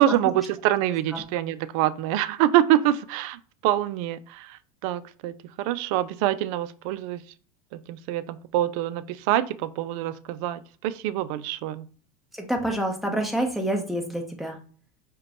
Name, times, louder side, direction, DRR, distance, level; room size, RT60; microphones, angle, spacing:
voice 1, 0.0-7.2 7.7-11.9, right 13 dB, 60° right, 15 dB, 0.4 m, -25 dB
voice 2, 12.4-14.6, right 1 dB, ahead, 2 dB, 0.9 m, -27 dB
4.9 x 2.3 x 2.9 m, 0.42 s
hypercardioid pair, 90°, 20 cm